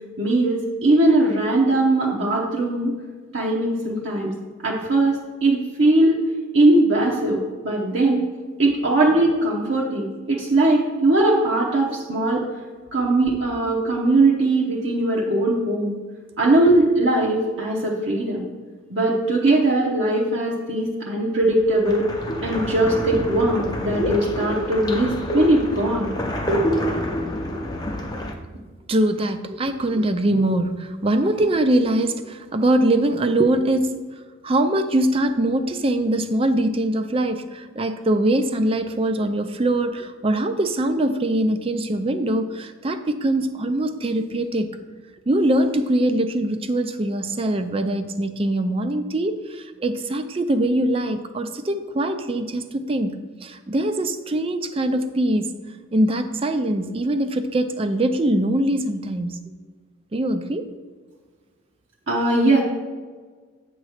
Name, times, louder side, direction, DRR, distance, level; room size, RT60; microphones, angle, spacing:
voice 1, 0.2-2.9 3.3-4.3 4.6-6.2 6.5-8.3 8.6-12.5 12.9-15.9 16.4-18.5 18.9-22.1 22.4-26.1 62.1-62.6, right 2 dB, 60° right, -4 dB, 1.0 m, -20 dB
sound 1, 21.4-28.3, left 1 dB, 20° left, 0.6 m, -27 dB
voice 2, 28.9-34.0 34.4-44.8 45.3-55.5 55.9-59.4 60.1-60.7, right 1 dB, 25° right, 9 dB, 0.4 m, -22 dB
8.5 x 3.1 x 6.4 m, 1.5 s
head